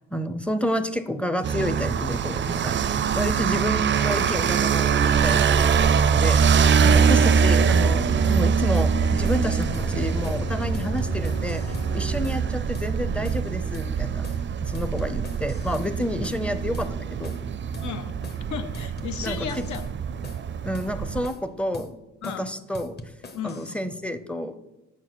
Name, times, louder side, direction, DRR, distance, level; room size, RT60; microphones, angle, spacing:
voice 1, 0.1-2.7 3.1-11.6 11.9-14.3 14.6-17.3 19.2-19.6 20.6-22.0 22.4-23.0 23.4-24.6, equal, 5° left, 10 dB, 0.6 m, -30 dB
sound 1, 1.4-21.3, right 6 dB, 40° right, 0.5 m, -23 dB
sound 2, 5.3-12.1, left 1 dB, 55° left, 1.8 m, -33 dB
voice 2, 6.8-7.1 17.8-19.9 22.2-22.5 23.3-23.8, left 8 dB, 70° left, 9 dB, 1.0 m, -34 dB
sound 3, 7.7-7.9 8.2-8.5 8.7-8.9 9.2-9.5 9.7-9.9 10.2-10.5 10.7-11.9 12.2-12.5 12.7-12.9 13.2-13.5 13.7-13.9 14.2-14.5 14.7-15.9 16.2-16.5 16.7-16.9 17.2-17.5 17.7-17.9 18.2-18.5 18.7-19.9 20.2-20.5 20.7-20.9 21.2-21.5 21.7-21.9 22.2-22.5 22.7-23.7, left 2 dB, 35° left, 1.1 m, -42 dB
7.2 x 6.0 x 6.2 m, 0.98 s
cardioid pair, 90°, 30 cm